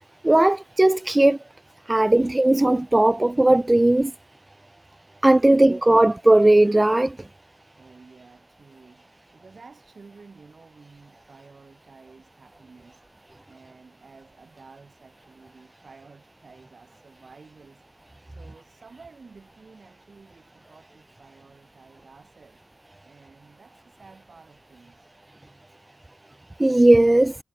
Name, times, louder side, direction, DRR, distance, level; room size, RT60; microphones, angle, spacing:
voice 1, 0.2-1.4 1.9-4.1 5.2-7.2 26.6-27.4, right 1 dB, 20° right, 0.6 m, -17 dB
voice 2, 5.3-6.1 7.8-22.6 23.0-25.1, right 4 dB, 70° right, 5.9 m, -52 dB
wide cardioid pair, 75°, 0 cm